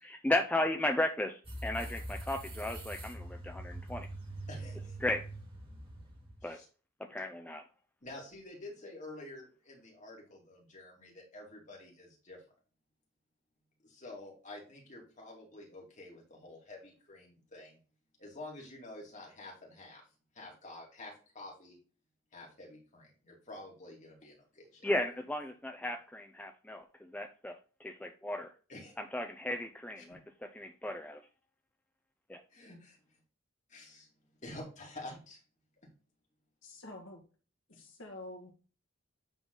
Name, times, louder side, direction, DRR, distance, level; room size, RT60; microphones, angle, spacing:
voice 1, 0.0-4.1 5.0-5.2 6.4-6.6 7.1-7.6 24.8-27.5 27.8-28.5 29.0-30.2 30.5-31.2 32.3-32.4, left 1 dB, 5° left, 4 dB, 0.5 m, -35 dB
sound 1, 1.4-6.4, right 1 dB, 25° right, 1.8 m, -43 dB
voice 2, 4.5-5.0 6.4-6.6 8.0-12.4 13.8-17.8 18.2-20.0 20.3-21.8 22.3-24.9 28.7-28.9 32.5-33.0 33.7-34.1 34.4-35.4, left 2 dB, 35° left, -2 dB, 2.7 m, -49 dB
voice 3, 36.6-37.2 37.7-38.5, left 2 dB, 65° left, 2 dB, 1.9 m, -47 dB
9.1 x 3.9 x 3.9 m, 0.37 s
head